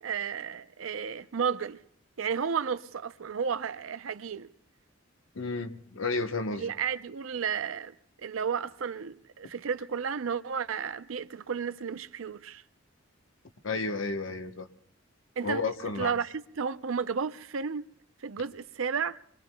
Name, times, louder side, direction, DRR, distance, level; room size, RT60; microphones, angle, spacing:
voice 1, 0.0-1.8 2.2-4.5 6.5-7.9 8.2-12.6 15.4-15.6 16.0-17.8 18.2-19.2, right 6 dB, 90° right, 0.6 m, -32 dB
voice 2, 5.3-6.7 13.6-14.7 15.4-16.1, left 3 dB, 75° left, 1.0 m, -32 dB
27.5 x 23.0 x 2.3 m
head